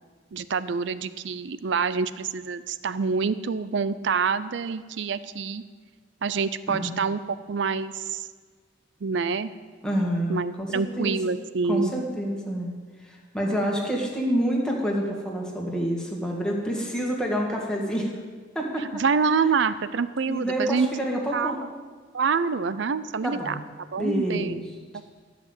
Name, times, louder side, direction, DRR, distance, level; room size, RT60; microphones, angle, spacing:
voice 1, 0.3-5.6 6.2-8.3 9.0-9.5 10.3-11.9 18.8-20.9 21.3-21.5 22.1-23.6 23.9-24.6, right 5 dB, 65° right, 14 dB, 0.5 m, -26 dB
voice 2, 9.8-11.1 11.6-12.7 13.0-18.1 18.6-19.0 20.3-21.6 23.2-23.6 24.0-24.6, equal, 5° left, -2 dB, 1.9 m, -27 dB
13.5 x 6.0 x 7.9 m, 1.5 s
head